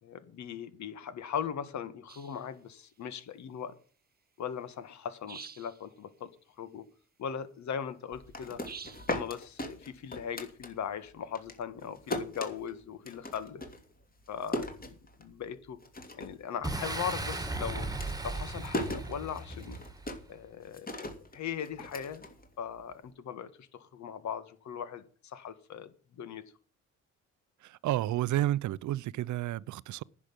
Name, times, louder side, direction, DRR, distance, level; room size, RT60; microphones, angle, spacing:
voice 1, 0.0-3.7 4.4-6.3 6.6-6.9 7.2-8.6 9.1-13.6 14.3-15.8 16.2-17.9 18.2-19.8 20.3-21.1 21.3-22.3 22.6-26.4, left 8 dB, 65° left, 1.8 m, -39 dB
sound 1, 2.1-2.4 5.3-5.8 8.6-9.2, right 6 dB, 30° right, 1.0 m, -46 dB
sound 2, 8.1-11.1 11.3-15.5 15.8-16.4 16.7-22.9, left 1 dB, 30° left, 2.9 m, -39 dB
Boom, 16.6-20.3, right 2 dB, 10° right, 1.8 m, -36 dB
voice 2, 27.6-30.0, right 14 dB, 75° right, 0.6 m, -31 dB
10.5 x 6.4 x 8.8 m
cardioid pair, 90°, 30 cm